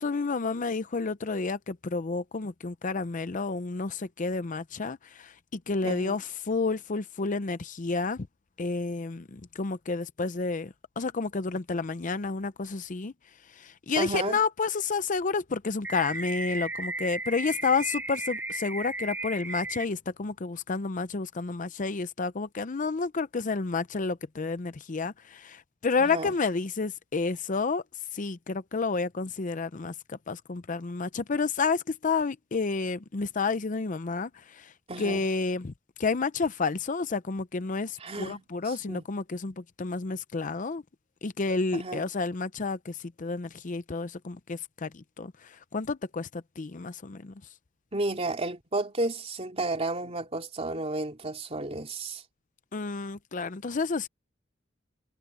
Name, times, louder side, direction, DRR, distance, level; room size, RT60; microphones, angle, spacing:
voice 1, 0.0-8.3 8.6-13.1 13.6-27.8 28.1-34.7 35.0-35.7 36.0-40.8 41.2-47.3 52.7-54.1, left 4 dB, 40° left, 0.6 m, -30 dB
voice 2, 5.8-6.2 14.0-14.4 26.0-26.3 34.9-35.2 38.0-39.1 41.7-42.1 47.9-52.2, right 2 dB, 35° right, 3.1 m, -32 dB
sound 1, 15.8-19.8, right 2 dB, 10° right, 3.2 m, -35 dB
head